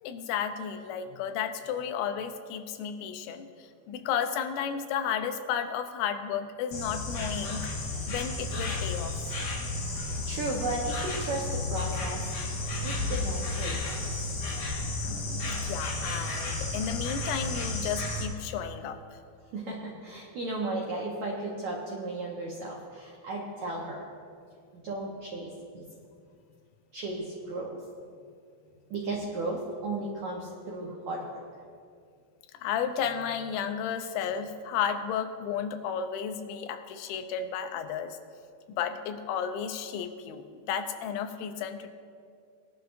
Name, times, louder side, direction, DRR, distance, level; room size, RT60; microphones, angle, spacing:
voice 1, 0.0-3.5 3.9-7.7 8.1-9.1 15.1-19.0 32.6-38.2 38.7-41.9, left 8 dB, 90° left, 7 dB, 3.1 m, -33 dB
Insect, 6.7-18.2, left 2 dB, 60° left, 2.9 m, -32 dB
voice 2, 10.3-12.3 12.8-14.4 19.5-24.1 24.7-25.9 26.9-27.8 28.9-31.4, right 2 dB, 90° right, -2 dB, 1.6 m, -35 dB
20.0 x 11.5 x 2.6 m, 2.3 s
omnidirectional pair, 5.1 m